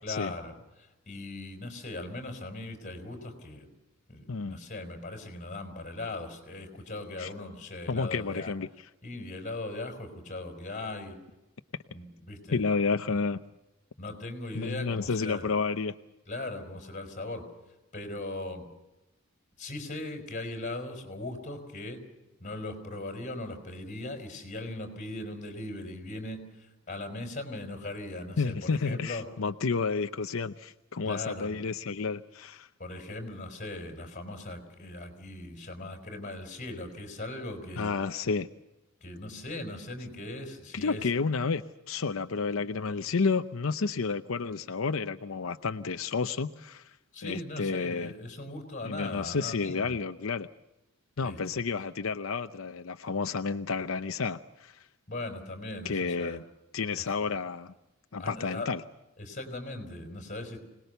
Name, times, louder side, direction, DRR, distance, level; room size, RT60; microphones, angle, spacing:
voice 1, 0.0-3.7 4.1-8.5 9.0-11.2 11.9-12.6 13.1-13.2 14.0-15.5 16.3-17.5 17.9-18.6 19.6-22.0 22.4-29.3 31.0-31.6 32.8-37.9 39.0-41.1 47.1-50.0 51.2-51.7 55.1-56.4 57.0-57.4 58.2-58.7 59.2-60.6, left 2 dB, 35° left, 5 dB, 5.1 m, -39 dB
voice 2, 7.9-8.7 12.5-13.4 14.5-15.9 28.4-32.7 37.8-38.5 40.7-46.9 47.2-48.1 48.8-50.5 51.2-54.8 55.8-56.4 56.7-57.7 58.1-58.8, left 4 dB, 90° left, 9 dB, 0.7 m, -31 dB
26.0 x 19.5 x 6.8 m, 0.98 s
head